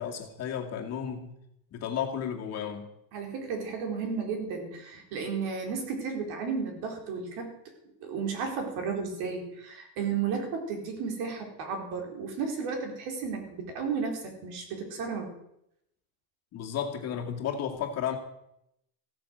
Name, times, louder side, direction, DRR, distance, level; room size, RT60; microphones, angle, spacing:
voice 1, 0.0-1.4 1.7-2.9 16.5-18.2, left 8 dB, 35° left, 1 dB, 2.3 m, -33 dB
voice 2, 3.1-7.5 8.0-15.3, right 5 dB, 60° right, 3 dB, 4.4 m, -33 dB
15.5 x 9.2 x 8.0 m, 0.79 s
cardioid pair, 165°, 43 cm